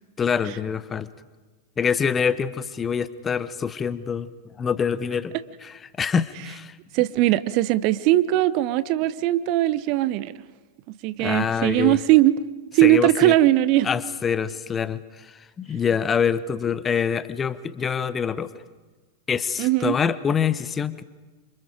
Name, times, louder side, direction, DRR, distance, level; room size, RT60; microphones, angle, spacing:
voice 1, 0.2-1.1 1.8-4.3 4.6-5.4 5.6-6.8 11.2-12.0 12.8-13.3 13.8-18.5 19.3-21.0, left 7 dB, 20° left, 17 dB, 0.8 m, -25 dB
voice 2, 6.9-10.4 11.0-12.4 12.7-13.9 19.6-19.9, right 15 dB, 45° right, 16 dB, 0.7 m, -20 dB
28.5 x 26.0 x 5.1 m, 1.3 s
figure-of-eight pair, 90°, 0 cm